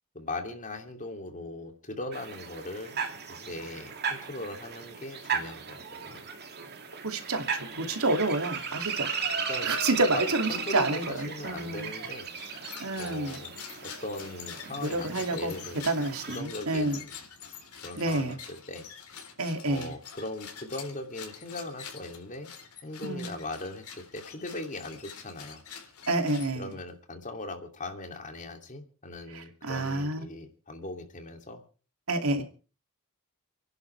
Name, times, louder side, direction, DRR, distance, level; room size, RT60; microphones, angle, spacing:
voice 1, 0.1-6.2 9.5-9.8 10.1-10.2 10.5-12.3 13.0-13.6 13.8-15.8 16.3-17.1 17.8-18.9 19.7-22.5 22.8-25.6 26.6-31.6 32.3-32.4, left 2 dB, 35° left, 5 dB, 2.8 m, -39 dB
sound 1, 2.1-16.4, right 6 dB, 50° right, 2.6 m, -36 dB
voice 2, 7.0-9.1 9.4-11.9 12.8-13.4 14.8-15.5 15.8-17.0 18.0-18.4 19.4-19.9 23.0-23.3 26.1-26.7 29.3-30.2 32.1-32.4, right 2 dB, 75° right, 6 dB, 2.6 m, -29 dB
sound 2, 12.3-26.9, left 7 dB, 90° left, 4.0 m, -46 dB
29.5 x 11.0 x 3.4 m, 0.37 s
head